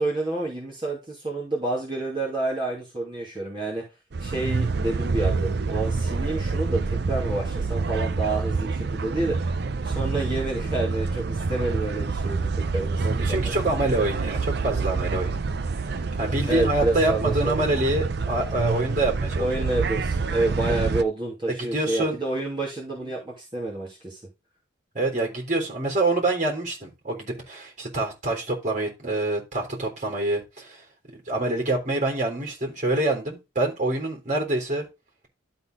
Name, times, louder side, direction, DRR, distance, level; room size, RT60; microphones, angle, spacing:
voice 1, 0.0-3.8 4.2-9.5 9.8-13.8 16.5-17.7 19.4-24.2, right 2 dB, 25° right, 2.8 m, -29 dB
sound 1, 4.1-21.0, right 4 dB, 55° right, 0.5 m, -27 dB
voice 2, 13.0-15.4 15.9-19.5 21.5-22.2 25.0-30.8 31.3-34.9, right 2 dB, 40° right, 3.6 m, -26 dB
12.5 x 4.2 x 4.0 m
head